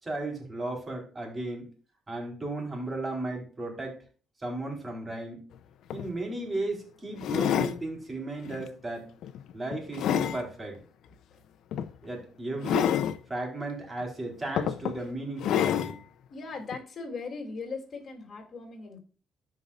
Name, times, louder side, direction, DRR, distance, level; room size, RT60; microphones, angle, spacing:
voice 1, 0.0-1.7 2.1-4.0 4.4-5.4 5.9-9.1 9.5-10.8 12.0-12.9 13.3-16.0, right 2 dB, 25° right, 1 dB, 4.0 m, -35 dB
sound 1, 5.5-5.6 5.9-6.1 7.2-7.8 8.4-8.7 9.2-10.4 11.7-11.9 12.6-13.2 14.0-14.1 14.6-15.0 15.4-16.0 16.7-16.8, left 10 dB, 80° left, 0.5 m, -28 dB
voice 2, 16.3-19.0, left 4 dB, 45° left, 2 dB, 2.8 m, -39 dB
13.5 x 5.5 x 2.5 m, 0.39 s
cardioid pair, 90°, 0 cm